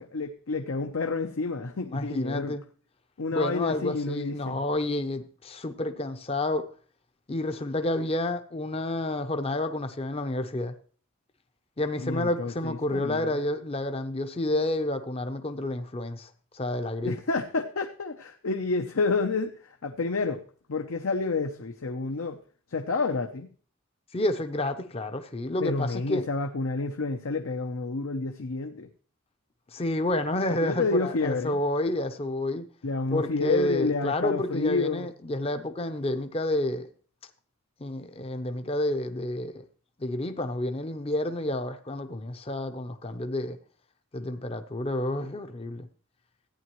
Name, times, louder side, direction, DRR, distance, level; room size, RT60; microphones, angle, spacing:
voice 1, 0.0-2.6 3.2-4.6 12.0-13.3 17.0-20.4 20.7-22.4 22.7-23.5 25.6-28.9 30.5-31.6 32.8-35.1, left 3 dB, 75° left, 0.7 m, -29 dB
voice 2, 1.9-2.6 3.3-6.7 7.3-10.8 11.8-17.1 24.1-26.3 29.7-32.6 33.1-36.9 37.8-39.6 40.0-43.6 44.1-45.9, left 1 dB, 25° left, 0.6 m, -30 dB
14.0 x 9.3 x 3.0 m
head